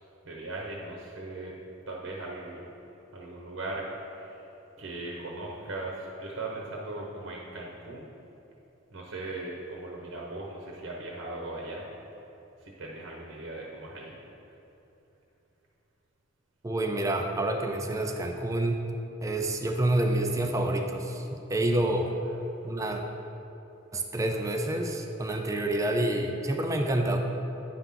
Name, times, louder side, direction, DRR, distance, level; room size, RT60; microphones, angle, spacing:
voice 1, 0.2-1.5 1.9-2.7 3.1-4.5 4.8-8.1 8.9-11.9 12.6-14.2, right 2 dB, 70° right, -2 dB, 0.9 m, -38 dB
voice 2, 16.6-18.8 19.2-22.2 22.6-23.0 23.9-27.2, right 1 dB, 15° right, 4 dB, 0.3 m, -28 dB
9.3 x 5.8 x 3.7 m, 2.9 s
head